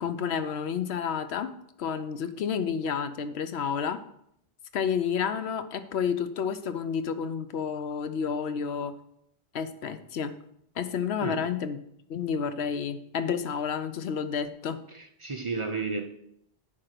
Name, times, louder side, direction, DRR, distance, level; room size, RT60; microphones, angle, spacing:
voice 1, 0.0-1.5 1.8-4.0 4.7-8.9 9.5-10.4 10.8-11.8 12.1-14.8, left 7 dB, 80° left, 11 dB, 0.9 m, -30 dB
voice 2, 14.9-16.1, right 4 dB, 35° right, 5 dB, 0.6 m, -33 dB
9.9 x 3.7 x 6.5 m, 0.72 s
omnidirectional pair, 1.1 m